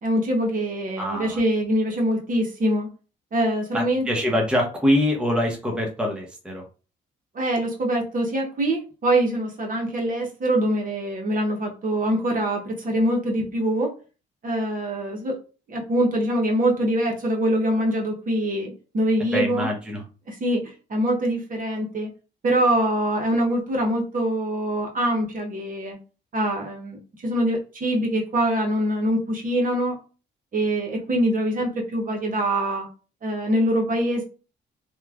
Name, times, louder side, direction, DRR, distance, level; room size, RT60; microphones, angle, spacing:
voice 1, 0.0-2.9 3.3-4.1 7.3-13.9 14.4-15.4 15.7-19.7 20.3-20.6 20.9-22.1 22.4-26.0 26.3-30.0 30.5-32.9 33.2-34.2, right 1 dB, 45° right, 0 dB, 0.8 m, -24 dB
voice 2, 1.0-1.4 3.7-6.6 19.3-20.0, left 1 dB, 5° right, 1 dB, 0.7 m, -24 dB
3.0 x 2.1 x 2.3 m, 0.35 s
cardioid pair, 90°, 20 cm